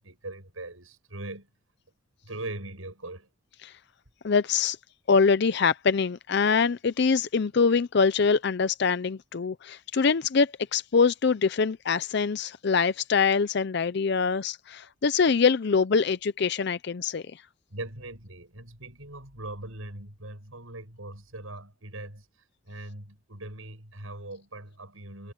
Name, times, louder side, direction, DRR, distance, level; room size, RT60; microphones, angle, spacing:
voice 1, 0.0-1.5 2.2-3.3 17.7-22.2 22.7-25.3, right 2 dB, 80° right, 7.5 m, -40 dB
voice 2, 4.2-4.8 5.1-17.4, left 5 dB, 55° left, 0.5 m, -24 dB
head